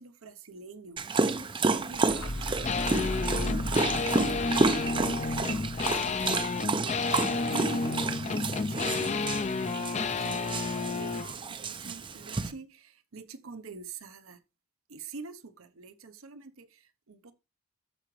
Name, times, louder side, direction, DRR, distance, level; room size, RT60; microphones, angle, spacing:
voice 1, 0.0-5.8 7.5-14.4 14.9-17.3, right 4 dB, 75° right, 0.9 m, -46 dB
Dog, 1.0-12.5, right 3 dB, 25° right, 0.5 m, -31 dB
sound 1, 1.8-7.6, left 1 dB, 70° left, 1.4 m, -38 dB
sound 2, 2.6-11.3, left 4 dB, 30° left, 0.5 m, -31 dB
13.5 x 5.0 x 3.2 m
head